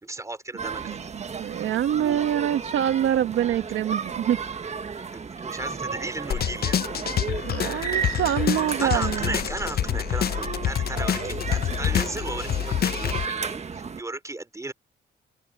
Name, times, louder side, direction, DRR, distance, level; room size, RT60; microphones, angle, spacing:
voice 1, 0.0-1.0 5.0-6.8 8.8-14.7, right 2 dB, 15° right, 3.9 m, -35 dB
sound 1, 0.6-14.0, right 5 dB, 35° right, 1.4 m, -34 dB
voice 2, 0.8-4.4 7.4-9.4, right 10 dB, 75° right, 1.6 m, -25 dB
sound 2, 6.3-13.3, left 10 dB, 50° left, 0.7 m, -27 dB
open air
cardioid pair, 90°, 20 cm